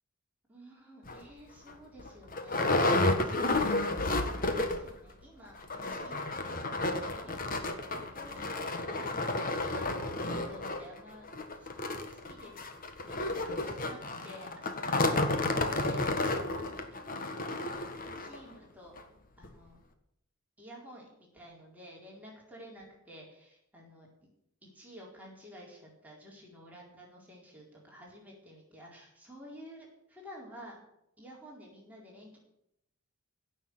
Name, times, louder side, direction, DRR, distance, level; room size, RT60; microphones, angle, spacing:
voice 1, 0.5-11.3 11.5-11.7 12.1-12.6 13.0-18.9 19.4-19.8 20.6-24.3 24.6-30.8 31.2-32.4, equal, 5° right, -3 dB, 4.1 m, -52 dB
sound 1, 1.1-1.2 1.7-1.8 2.0-4.9 5.2-5.3 5.6-18.4 19.0-19.1 19.4-19.5, left 2 dB, 40° left, 1.6 m, -31 dB
16.5 x 6.7 x 9.6 m, 0.78 s
head